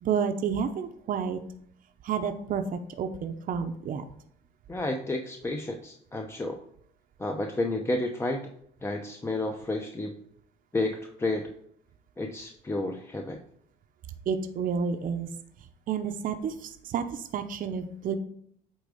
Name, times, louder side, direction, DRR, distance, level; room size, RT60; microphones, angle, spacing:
voice 1, 0.0-1.4 2.0-4.0 14.3-15.3 15.9-18.1, right 6 dB, 55° right, 7 dB, 0.8 m, -30 dB
voice 2, 4.7-6.6 7.2-8.5 8.8-10.1 10.7-11.5 12.2-13.4, left 2 dB, 15° left, 3 dB, 0.7 m, -31 dB
8.6 x 3.6 x 5.0 m, 0.66 s
cardioid pair, 110°, 17 cm